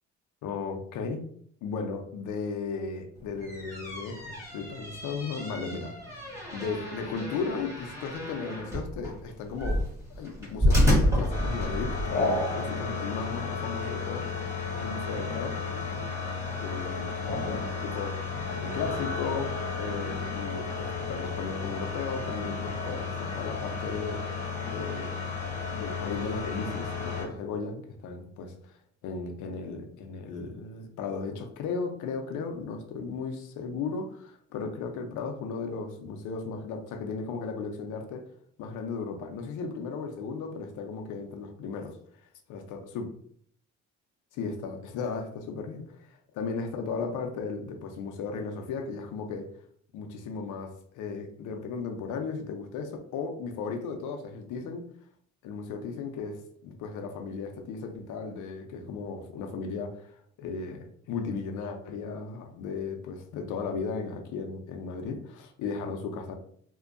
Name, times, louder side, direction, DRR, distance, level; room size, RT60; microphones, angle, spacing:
voice 1, 0.4-1.2 1.6-6.1 6.5-9.8 10.2-15.5 16.6-19.5 19.8-24.2 24.6-25.2 25.7-28.7 29.0-38.2 38.6-42.0 42.5-43.1 44.3-49.5 49.9-54.8 55.4-66.4, left 4 dB, 85° left, 5 dB, 0.5 m, -36 dB
sound 1, 3.2-12.1, equal, 10° right, 1.2 m, -29 dB
sound 2, 11.3-27.3, left 4 dB, 25° left, 0.7 m, -33 dB
2.6 x 2.2 x 2.4 m, 0.63 s
cardioid pair, 90°, 30 cm